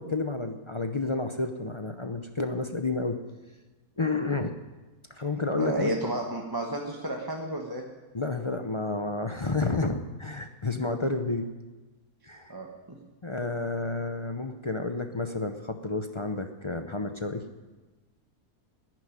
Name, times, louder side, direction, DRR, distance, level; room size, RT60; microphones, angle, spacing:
voice 1, 0.0-3.2 4.0-4.5 5.1-5.9 8.1-11.5 12.2-12.5 13.2-17.4, left 3 dB, 35° left, 6 dB, 0.5 m, -30 dB
voice 2, 5.6-7.8 12.5-12.7, right 1 dB, 15° right, 0 dB, 1.1 m, -31 dB
11.0 x 10.0 x 9.5 m, 1.2 s
omnidirectional pair, 1.6 m